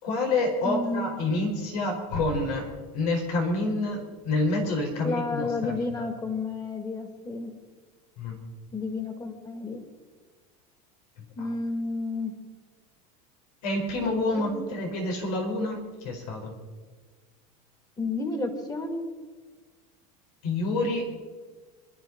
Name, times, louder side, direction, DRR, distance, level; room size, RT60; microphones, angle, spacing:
voice 1, 0.0-5.8 8.2-8.4 11.2-11.5 13.6-16.5 20.4-21.0, left 2 dB, 85° left, 2 dB, 4.7 m, -28 dB
voice 2, 0.6-1.1 5.0-7.5 8.7-9.8 11.4-12.3 14.3-14.6 18.0-19.0, left 3 dB, 20° left, 5 dB, 2.6 m, -31 dB
27.0 x 12.5 x 4.1 m, 1.4 s
supercardioid pair, 120°, 18 cm